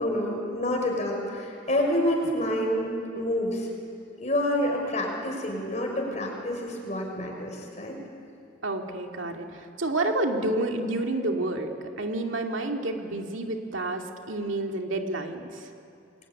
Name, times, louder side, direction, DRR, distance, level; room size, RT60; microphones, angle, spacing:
voice 1, 0.0-2.9 3.2-3.7 4.2-8.0, left 1 dB, 35° left, 1 dB, 6.0 m, -28 dB
voice 2, 8.6-11.7 12.0-15.7, right 2 dB, 80° right, 3 dB, 2.4 m, -29 dB
28.0 x 21.5 x 9.8 m, 2.5 s
head